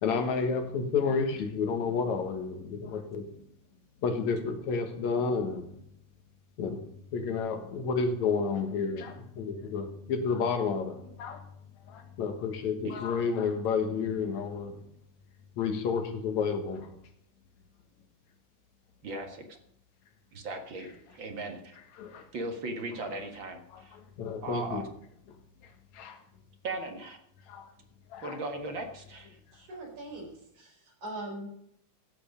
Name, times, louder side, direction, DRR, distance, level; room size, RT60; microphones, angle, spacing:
voice 1, 0.0-3.4 4.0-5.8 6.6-11.4 11.9-14.8 15.6-16.9 22.0-22.2 23.7-23.8 24.2-24.8 25.9-26.2 27.5-27.7 28.1-28.4, left 5 dB, 70° left, 2.9 m, -31 dB
voice 2, 19.0-19.6 20.3-21.8 22.3-24.0 24.4-24.9 26.6-27.2 28.2-29.4, right 2 dB, 45° right, 2.0 m, -38 dB
voice 3, 29.5-31.5, right 1 dB, 75° right, 5.8 m, -41 dB
15.0 x 8.1 x 5.2 m
omnidirectional pair, 3.4 m